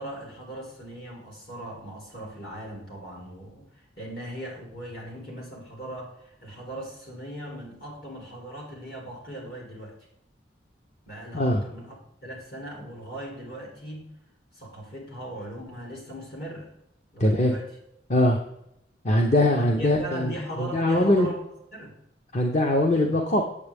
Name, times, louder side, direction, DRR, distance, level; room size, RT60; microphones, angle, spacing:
voice 1, 0.0-10.0 11.1-12.0 12.2-14.1 14.5-16.7 17.1-17.7 19.6-21.4 21.7-21.9, right 1 dB, 55° left, -2 dB, 3.3 m, -39 dB
voice 2, 17.2-17.5 18.1-18.4 19.0-20.3 20.6-21.3 22.3-23.4, left 1 dB, 40° left, 2 dB, 0.8 m, -21 dB
8.4 x 7.5 x 3.5 m, 0.77 s
head